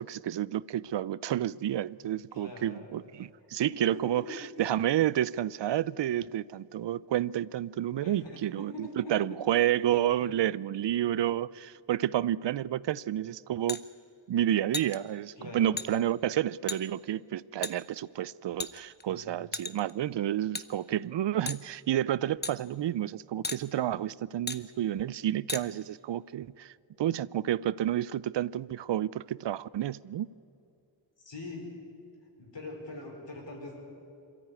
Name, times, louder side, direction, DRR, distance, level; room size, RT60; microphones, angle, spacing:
voice 1, 0.0-13.8 14.3-30.3, right 12 dB, 65° right, 21 dB, 0.5 m, -30 dB
voice 2, 2.3-2.9 3.6-4.2 8.0-9.4 10.1-10.3 11.0-11.1 15.4-15.7 19.0-19.4 31.2-31.7 32.4-33.8, left 2 dB, 65° left, 0 dB, 5.0 m, -43 dB
metal hammer clink, 13.7-13.8 14.7-15.0 15.8-15.9 16.7-16.8 17.6-17.7 18.6-19.0 19.5-19.9 20.5-20.7 21.5-21.6 22.4-22.5 23.4-23.6 24.5-24.6 25.5-25.6, left 3 dB, 20° left, 0.9 m, -34 dB
22.0 x 14.0 x 9.6 m, 2.6 s
cardioid pair, 55°, 46 cm